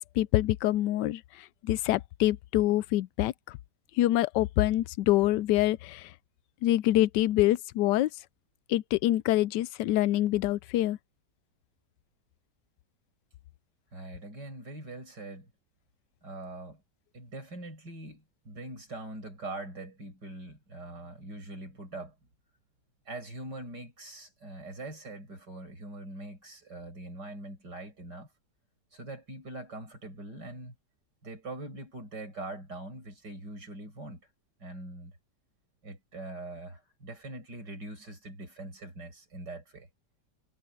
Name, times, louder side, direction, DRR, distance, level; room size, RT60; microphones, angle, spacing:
voice 1, 0.2-1.2 1.6-3.3 4.0-6.1 6.6-8.1 8.7-11.0, left 15 dB, 85° left, 1.2 m, -25 dB
voice 2, 13.9-15.5 16.2-16.8 17.1-22.1 23.1-28.3 28.9-30.7 31.2-34.2 34.6-35.1 35.8-39.9, right 2 dB, 85° right, 7.7 m, -42 dB
omnidirectional pair, 1.8 m